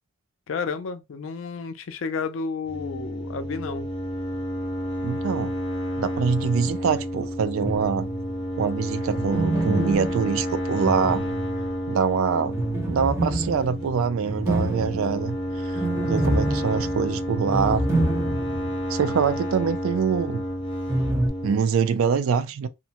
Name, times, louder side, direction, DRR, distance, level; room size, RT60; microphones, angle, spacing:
voice 1, 0.5-3.9, left 5 dB, 70° left, 0.4 m, -31 dB
sound 1, 2.7-21.6, equal, 30° left, 0.7 m, -30 dB
voice 2, 5.0-5.6 6.0-8.1 8.6-11.2 11.9-12.6 12.9-15.4 15.6-15.7 16.0-17.9 18.9-20.4 21.4-22.7, right 6 dB, 80° right, 0.3 m, -24 dB
sound 2, 7.6-8.3 9.1-11.9 12.5-18.7 19.0-19.1 20.9-21.3, right 1 dB, 15° right, 0.7 m, -27 dB
2.6 x 2.1 x 2.8 m
head